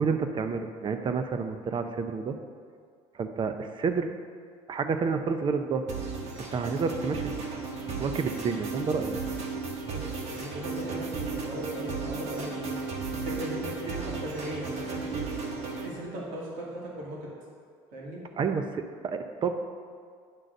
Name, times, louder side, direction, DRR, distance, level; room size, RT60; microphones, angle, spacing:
voice 1, 0.0-2.4 3.2-4.1 4.7-5.8 6.4-7.3 8.0-9.2 18.4-19.5, right 5 dB, 40° right, 8 dB, 0.6 m, -29 dB
sound 1, 5.9-15.9, right 4 dB, 55° right, 1.3 m, -35 dB
voice 2, 10.3-12.8 13.2-15.3 15.8-17.3 17.9-18.2, right 1 dB, 75° right, -4 dB, 2.0 m, -38 dB
9.2 x 3.8 x 6.5 m, 2.1 s
supercardioid pair, 95°, 13 cm